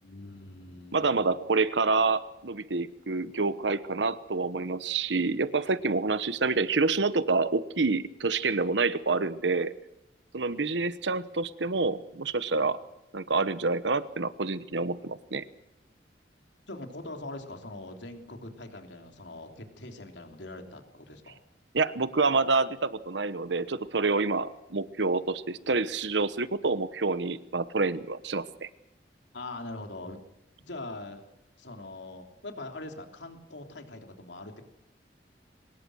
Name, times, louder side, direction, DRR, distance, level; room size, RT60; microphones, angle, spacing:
voice 1, 0.0-1.3 16.7-21.4 29.3-30.2 30.6-31.2 31.6-34.7, left 2 dB, 90° left, 4 dB, 3.2 m, -42 dB
voice 2, 0.9-9.7 10.3-12.8 13.1-15.4 21.7-28.7, right 3 dB, 85° right, 14 dB, 1.1 m, -27 dB
23.5 x 20.0 x 6.4 m, 0.89 s
head